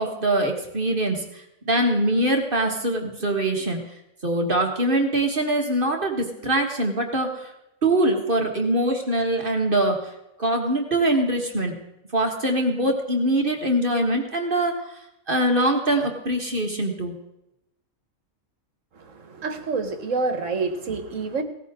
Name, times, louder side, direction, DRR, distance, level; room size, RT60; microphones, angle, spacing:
voice 1, 0.0-3.8 4.2-7.5 7.8-10.1 10.4-11.8 12.1-15.0 15.3-17.1, right 1 dB, 40° right, 2 dB, 1.8 m, -23 dB
voice 2, 18.9-21.4, right 4 dB, 65° right, 8 dB, 1.7 m, -28 dB
17.0 x 14.0 x 3.7 m, 0.86 s
omnidirectional pair, 1.4 m